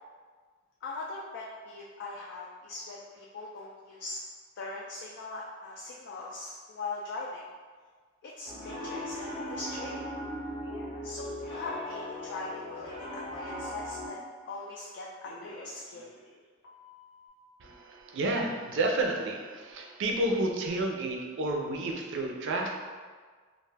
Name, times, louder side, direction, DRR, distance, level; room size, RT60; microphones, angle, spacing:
voice 1, 0.8-4.2 4.6-7.4 8.2-10.0 11.0-14.2 14.4-16.1, left 3 dB, 60° left, -3 dB, 0.3 m, -41 dB
Piano, 8.5-14.1, left 1 dB, 20° left, 0.7 m, -38 dB
Telephone, 10.6-11.1 11.4-13.2 14.9-16.4 16.6-17.3, left 1 dB, 90° left, 0.7 m, -51 dB
voice 2, 17.6-22.7, right 2 dB, 65° right, 1 dB, 0.4 m, -30 dB
2.4 x 2.3 x 3.2 m, 1.5 s
head